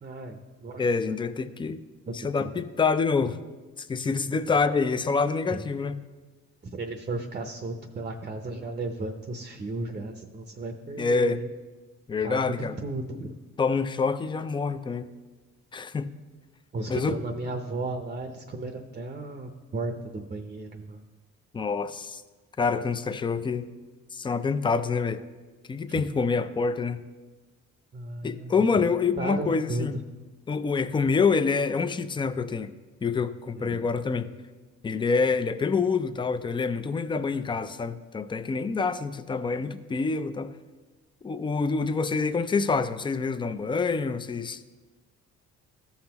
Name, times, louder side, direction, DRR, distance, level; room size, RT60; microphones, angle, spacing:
voice 1, 0.0-0.8 1.4-1.5 2.1-2.5 5.5-5.6 6.6-11.5 12.2-13.4 16.7-21.0 25.9-26.0 27.9-28.9 29.2-30.0 33.6-33.9, right 2 dB, 30° right, 6 dB, 0.7 m, -35 dB
voice 2, 0.8-1.8 2.1-3.4 3.8-6.0 11.0-11.4 12.1-12.7 13.6-15.1 15.7-16.1 16.9-17.2 21.5-22.2 22.6-23.7 24.1-25.2 25.7-27.0 28.2-29.9 30.5-32.7 33.0-34.3 34.8-40.5 41.2-44.6, left 4 dB, 15° left, 11 dB, 0.4 m, -26 dB
14.5 x 5.7 x 2.9 m, 1.3 s
cardioid pair, 90°, 30 cm